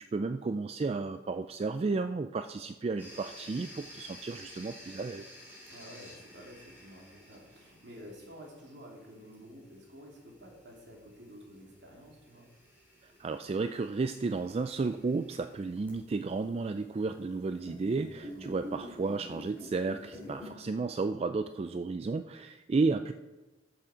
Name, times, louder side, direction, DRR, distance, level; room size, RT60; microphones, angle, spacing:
voice 1, 0.0-5.3 13.0-23.1, right 3 dB, 35° right, 9 dB, 0.3 m, -33 dB
sound 1, 3.0-20.5, left 1 dB, 10° right, 3.5 m, -51 dB
voice 2, 5.7-12.5 18.3-18.5, equal, 65° right, -1 dB, 2.9 m, -51 dB
13.5 x 7.1 x 5.0 m, 1.1 s
head